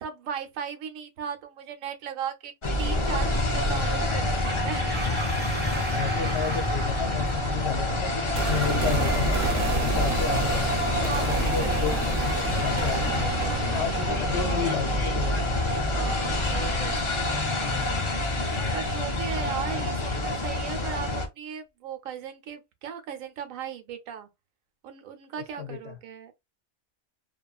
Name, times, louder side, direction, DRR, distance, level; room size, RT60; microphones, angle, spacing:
voice 1, 0.0-2.5 2.8-4.2 4.5-5.0 11.1-11.7 12.0-12.5 12.7-13.8 15.9-17.1 17.5-18.2 18.7-24.3 24.8-26.3, right 8 dB, 85° right, 1.0 m, -37 dB
sound 1, 2.6-21.3, left 1 dB, 35° left, 0.5 m, -27 dB
sound 2, 2.8-13.9, left 1 dB, 10° right, 0.5 m, -33 dB
voice 2, 5.9-8.1 8.5-9.4 9.7-10.7 11.0-11.9 12.2-13.3 13.7-15.5 25.6-26.0, left 7 dB, 65° left, 0.7 m, -32 dB
sound 3, 8.3-18.3 18.6-18.7, right 3 dB, 50° right, 0.7 m, -31 dB
2.8 x 2.4 x 2.3 m
omnidirectional pair, 1.4 m